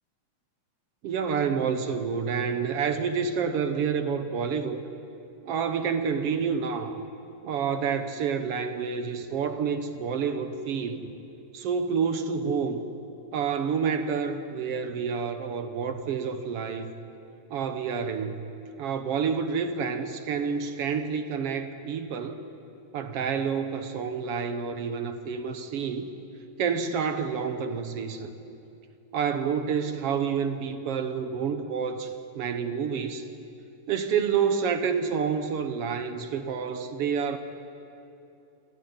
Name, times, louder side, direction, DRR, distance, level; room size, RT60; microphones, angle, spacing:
voice 1, 1.0-4.8 5.5-7.0 7.4-11.1 11.5-12.8 13.3-16.9 17.5-18.5 18.8-22.4 22.9-26.1 26.6-28.3 29.1-33.3 33.9-37.4, right 6 dB, 60° right, 9 dB, 1.9 m, -28 dB
27.0 x 14.0 x 9.6 m, 2.7 s
omnidirectional pair, 3.3 m